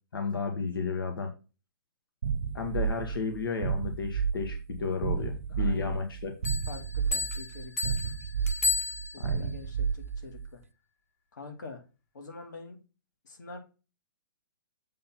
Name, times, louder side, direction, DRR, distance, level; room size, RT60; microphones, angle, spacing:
voice 1, 0.1-1.3 2.5-6.3 9.2-9.5, left 4 dB, 90° left, 4 dB, 1.7 m, -33 dB
sound 1, 2.2-10.5, right 6 dB, 40° right, 0.4 m, -32 dB
voice 2, 5.2-6.0 6.7-8.5 9.1-10.6 11.3-11.8 12.1-12.8 13.2-13.6, left 3 dB, 60° left, 3 dB, 2.6 m, -46 dB
sound 2, 6.4-9.5, left 3 dB, 40° left, 1.6 m, -33 dB
7.6 x 3.9 x 5.9 m, 0.31 s
hypercardioid pair, 180°, 11 cm